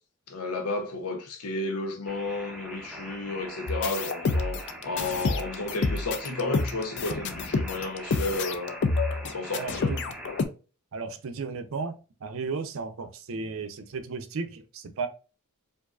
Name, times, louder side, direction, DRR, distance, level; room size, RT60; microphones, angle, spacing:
voice 1, 0.3-8.7 9.3-10.0, left 2 dB, 90° left, 0.8 m, -32 dB
sound 1, 2.1-10.4, right 1 dB, 5° right, 0.6 m, -43 dB
sound 2, 3.7-10.4, left 3 dB, 50° left, 0.4 m, -28 dB
voice 2, 9.6-10.2 10.9-11.9 12.2-15.1, right 4 dB, 60° right, 0.5 m, -34 dB
4.7 x 2.6 x 2.4 m
head